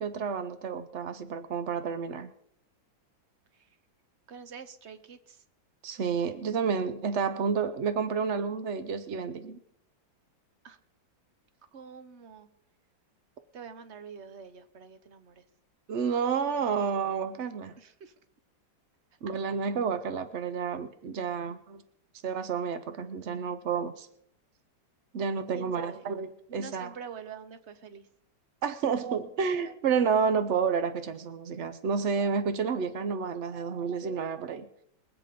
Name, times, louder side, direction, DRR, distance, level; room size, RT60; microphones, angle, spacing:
voice 1, 0.0-2.3 5.8-9.6 15.9-17.7 19.2-21.8 22.2-24.1 25.1-26.3 26.5-26.9 28.6-34.7, right 6 dB, 70° right, 10 dB, 0.6 m, -30 dB
voice 2, 4.3-5.4 10.6-10.8 11.7-12.5 13.5-15.4 17.8-18.1 25.5-26.1 26.5-28.1, right 6 dB, 50° right, 11 dB, 0.9 m, -46 dB
21.5 x 8.0 x 5.1 m, 0.71 s
omnidirectional pair, 2.1 m